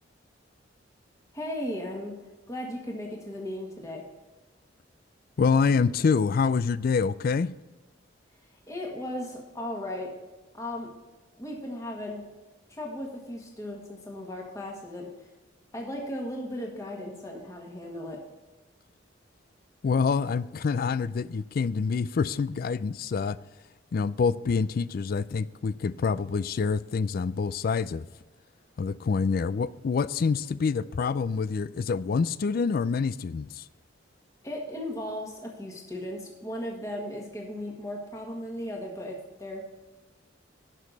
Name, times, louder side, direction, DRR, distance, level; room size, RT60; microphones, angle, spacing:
voice 1, 1.3-2.1 2.5-4.0 8.7-10.1 10.5-10.9 11.4-12.2 12.7-15.1 15.7-18.2 34.4-39.6, left 1 dB, 15° left, 1.7 m, -36 dB
voice 2, 5.4-7.5 19.8-23.4 23.9-28.1 28.8-33.6, left 5 dB, 50° left, 0.4 m, -26 dB
11.0 x 6.6 x 4.0 m
head